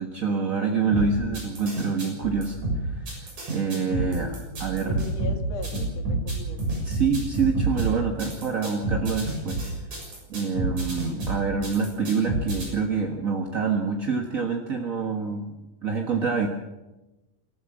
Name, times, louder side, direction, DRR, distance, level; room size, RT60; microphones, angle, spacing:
voice 1, 0.0-2.6 2.9-3.2 3.5-4.3 4.6-5.0 6.8-9.6 10.3-15.5 15.8-16.5, right 5 dB, 40° right, 2 dB, 1.4 m, -26 dB
sound 1, 0.9-12.7, right 2 dB, 80° right, 8.4 m, -28 dB
voice 2, 4.1-6.8, left 5 dB, 60° left, 4 dB, 3.3 m, -40 dB
26.0 x 14.5 x 7.4 m, 1.1 s
omnidirectional pair, 3.4 m